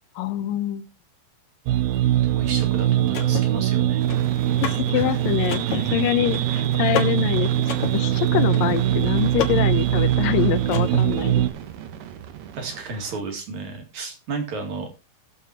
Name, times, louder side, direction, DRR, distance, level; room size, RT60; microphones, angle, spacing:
voice 1, 0.2-0.9 4.6-7.5 7.9-11.5, left 13 dB, 75° left, 12 dB, 2.3 m, -25 dB
sound 1, 1.7-11.5, right 13 dB, 90° right, 2.7 m, -22 dB
voice 2, 2.2-4.0 4.9-5.2 6.4-6.5 12.6-14.9, right 3 dB, 55° right, 3 dB, 3.3 m, -33 dB
Car / Mechanisms, 2.4-11.3, left 7 dB, 55° left, 2.6 m, -34 dB
sound 2, 4.0-13.2, right 9 dB, 75° right, 1.6 m, -35 dB
19.5 x 7.1 x 2.9 m, 0.28 s
omnidirectional pair, 4.3 m